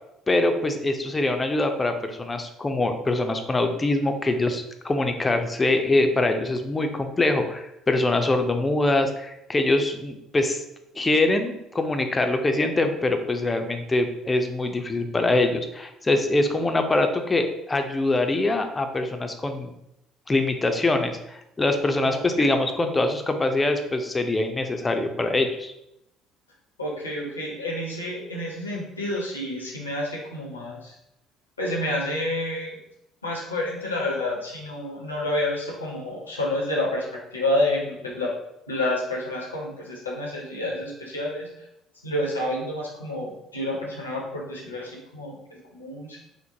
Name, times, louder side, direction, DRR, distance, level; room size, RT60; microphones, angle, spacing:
voice 1, 0.3-10.6 11.0-19.7 20.3-25.7, left 2 dB, 20° left, 6 dB, 0.4 m, -24 dB
voice 2, 22.0-22.5 26.8-30.9 31.6-32.8 33.2-37.1 37.3-38.3 38.7-41.5 42.0-46.2, left 1 dB, 85° left, -3 dB, 0.6 m, -29 dB
3.1 x 2.0 x 2.6 m, 0.84 s
figure-of-eight pair, 55°, 0 cm